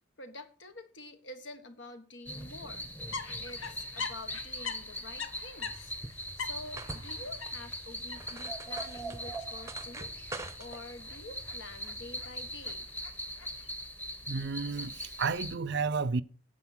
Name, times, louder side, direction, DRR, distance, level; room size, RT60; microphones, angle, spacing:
voice 1, 0.2-2.9 3.4-5.9 6.4-10.1 10.6-12.9, left 2 dB, 65° left, 1.5 m, -47 dB
sound 1, 2.3-15.6, equal, 10° left, 1.1 m, -41 dB
sound 2, 3.1-13.7, left 5 dB, 90° left, 1.2 m, -45 dB
sound 3, 5.6-12.8, right 2 dB, 15° right, 0.8 m, -47 dB
voice 2, 14.3-16.2, right 4 dB, 60° right, 0.5 m, -32 dB
9.3 x 8.0 x 6.2 m
head